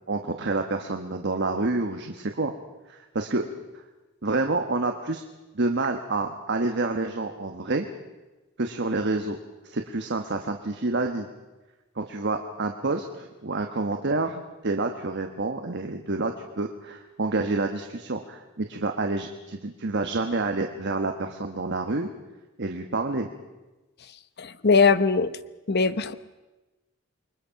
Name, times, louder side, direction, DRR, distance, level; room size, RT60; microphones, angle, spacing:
voice 1, 0.1-2.5 2.9-3.4 4.2-5.2 5.5-7.9 8.6-9.4 9.6-11.3 12.0-22.1 22.6-23.3, right 3 dB, 55° right, 5 dB, 1.3 m, -28 dB
voice 2, 24.4-25.3 25.7-26.1, left 4 dB, 50° left, 13 dB, 0.9 m, -20 dB
28.5 x 22.0 x 5.8 m, 1.1 s
head